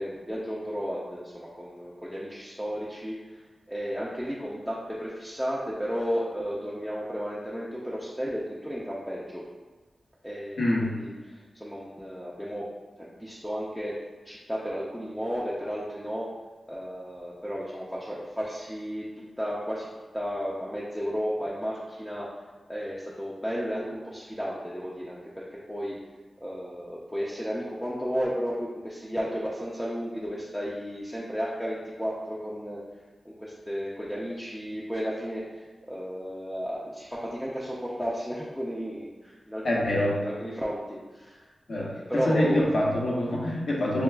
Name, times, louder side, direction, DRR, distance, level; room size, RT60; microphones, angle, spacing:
voice 1, 0.0-9.4 10.2-12.7 13.0-16.3 16.7-19.9 20.1-22.3 22.7-26.0 26.4-32.8 33.2-41.5 41.7-42.6, equal, 5° left, -7 dB, 0.4 m, -33 dB
voice 2, 10.6-10.9 39.6-40.2 41.7-44.0, left 1 dB, 55° left, -4 dB, 0.7 m, -25 dB
6.5 x 2.3 x 2.2 m, 1.3 s
wide cardioid pair, 175°, 0 cm